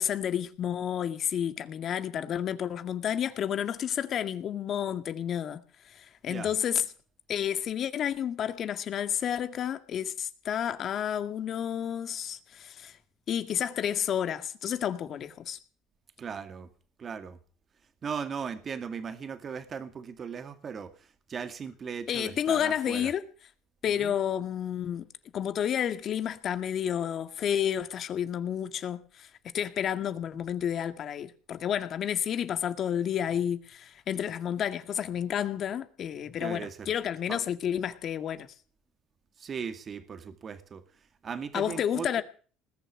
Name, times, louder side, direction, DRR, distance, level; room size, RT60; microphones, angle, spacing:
voice 1, 0.0-5.6 6.0-6.9 7.3-12.9 13.3-15.6 22.1-23.2 23.8-25.1 25.3-29.3 29.5-38.5 41.5-42.2, left 9 dB, 55° left, 2.0 m, -30 dB
voice 2, 16.2-16.7 17.0-17.4 18.0-20.9 21.3-23.1 24.0-24.1 36.4-36.9 37.3-37.4 39.4-40.8 41.2-42.1, right 6 dB, 40° right, 2.3 m, -37 dB
20.0 x 7.0 x 10.0 m
supercardioid pair, 90°, 0 cm